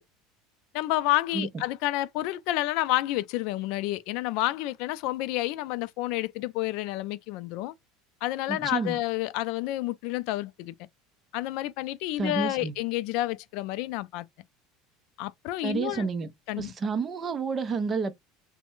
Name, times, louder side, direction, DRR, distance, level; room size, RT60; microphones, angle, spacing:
voice 1, 0.7-7.7 8.2-10.7 11.3-14.3 15.2-16.1 16.5-16.7, left 16 dB, 60° left, 0.3 m, -29 dB
voice 2, 8.5-9.0 12.2-12.7 15.6-16.3 16.6-18.1, right 5 dB, 20° right, 0.5 m, -30 dB
3.2 x 2.1 x 3.0 m
cardioid pair, 155°, 0 cm